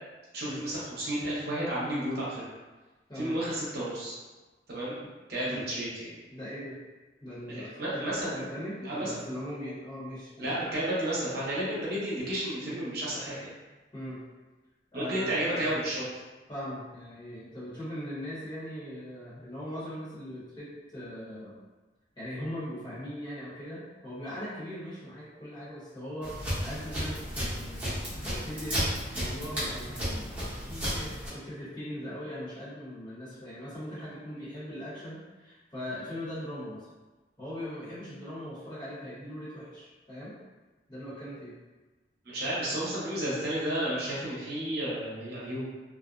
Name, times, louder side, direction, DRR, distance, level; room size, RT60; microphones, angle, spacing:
voice 1, 0.3-2.5 3.1-4.1 4.7-5.0 5.3-6.1 7.5-8.4 8.8-9.2 10.4-13.5 14.9-16.1 42.3-45.7, right 1 dB, 60° right, -7 dB, 0.8 m, -32 dB
voice 2, 3.1-3.4 5.0-5.1 5.4-5.7 6.3-6.8 7.2-8.0 8.3-10.5 13.9-14.2 14.9-15.7 16.5-21.6 22.2-27.9 28.2-28.9 29.1-30.3 30.6-36.9 37.4-40.3 40.9-41.5, equal, 25° left, -11 dB, 1.0 m, -40 dB
sound 1, 26.2-31.3, equal, 10° right, 0.8 m, -33 dB
2.5 x 2.1 x 2.5 m, 1.2 s
head